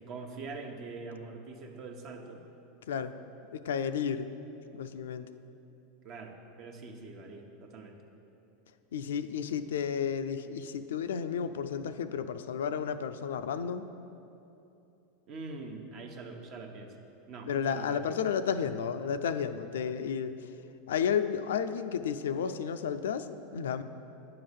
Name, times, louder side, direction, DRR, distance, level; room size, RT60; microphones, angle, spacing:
voice 1, 0.0-2.4 6.0-8.0 15.3-17.0 17.3-18.1, right 3 dB, 50° right, 4 dB, 0.9 m, -43 dB
voice 2, 3.5-4.3 4.7-5.3 8.9-13.9 17.5-20.5 20.9-23.8, left 7 dB, 85° left, 10 dB, 0.4 m, -32 dB
9.8 x 3.8 x 6.9 m, 2.9 s
hypercardioid pair, 110°, 0 cm